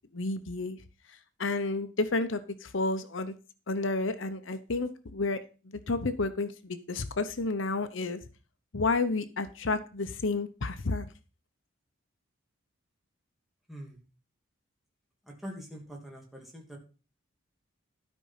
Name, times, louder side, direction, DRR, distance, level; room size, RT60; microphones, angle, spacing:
voice 1, 0.1-0.8 1.4-3.4 3.7-5.4 5.9-8.2 8.7-11.1, left 3 dB, 65° left, 11 dB, 0.8 m, -31 dB
voice 2, 13.7-14.0 15.3-16.8, equal, ahead, -1 dB, 2.7 m, -44 dB
12.5 x 5.3 x 5.7 m, 0.34 s
head